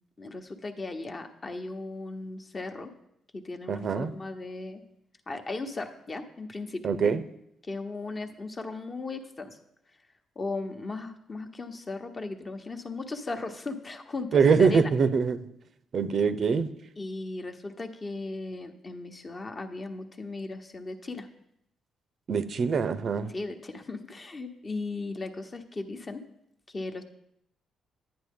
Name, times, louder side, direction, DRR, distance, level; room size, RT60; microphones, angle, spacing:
voice 1, 0.2-2.9 3.3-4.8 5.3-6.9 7.7-9.6 10.4-14.9 17.0-21.3 23.3-26.2 26.7-27.0, left 3 dB, 30° left, 6 dB, 1.0 m, -37 dB
voice 2, 3.7-4.1 6.8-7.2 14.3-15.4 15.9-16.7 22.3-23.3, right 5 dB, 50° right, 13 dB, 0.6 m, -23 dB
10.0 x 9.6 x 3.7 m, 0.78 s
cardioid pair, 90°, 0 cm